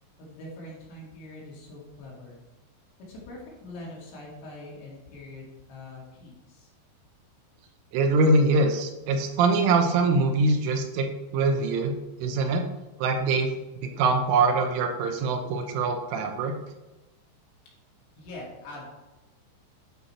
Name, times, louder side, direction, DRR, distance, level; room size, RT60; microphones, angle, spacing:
voice 1, 0.2-2.4 3.1-6.7 18.2-18.9, left 2 dB, 60° left, -4 dB, 4.1 m, -43 dB
voice 2, 7.9-11.1 11.3-11.9 12.2-12.6 13.0-13.5 13.8-16.5, right 3 dB, 85° right, 5 dB, 3.4 m, -23 dB
11.0 x 5.5 x 4.3 m, 1.0 s
omnidirectional pair, 5.7 m